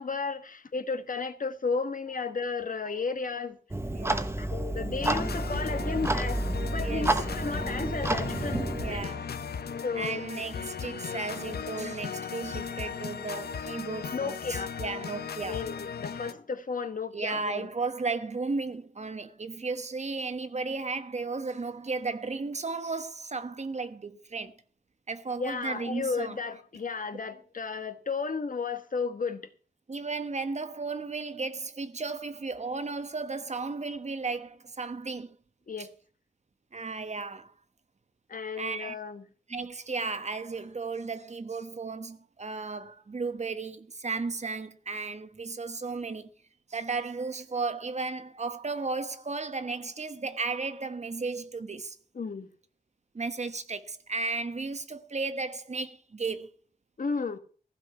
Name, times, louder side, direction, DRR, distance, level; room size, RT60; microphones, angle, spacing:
voice 1, 0.0-3.6 4.4-6.4 6.7-9.0 9.8-10.2 14.1-14.7 15.4-17.7 25.4-29.5 35.7-35.9 38.3-39.3 52.1-52.5 57.0-57.4, left 4 dB, 55° left, 1.3 m, -33 dB
Clock, 3.7-9.0, right 2 dB, 15° right, 1.1 m, -30 dB
voice 2, 3.9-4.4 6.8-7.2 8.8-9.3 9.9-15.6 17.1-24.6 25.1-26.3 29.9-35.3 35.8-35.9 36.7-37.5 38.6-38.9 39.5-46.3 46.7-52.0 53.1-56.6, right 4 dB, 45° right, 1.1 m, -34 dB
sound 1, 5.0-16.3, left 6 dB, 85° left, 0.8 m, -37 dB
15.5 x 5.3 x 8.3 m
wide cardioid pair, 80°, 16 cm